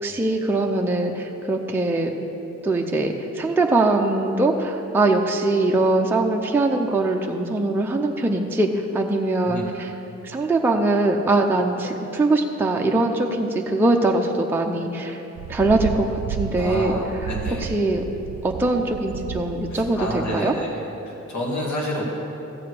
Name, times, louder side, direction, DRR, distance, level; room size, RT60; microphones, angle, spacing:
voice 1, 0.0-2.1 2.6-9.9 10.2-15.2 15.5-16.9 17.6-18.0 18.4-20.5, right 2 dB, 5° right, 1 dB, 0.5 m, -22 dB
sound 1, 15.4-20.4, right 9 dB, 85° right, 0.5 m, -33 dB
voice 2, 16.6-17.7 19.7-20.7 21.0-22.0, left 1 dB, 70° left, -3 dB, 2.2 m, -29 dB
14.0 x 4.9 x 8.2 m, 2.9 s
wide cardioid pair, 175°, 29 cm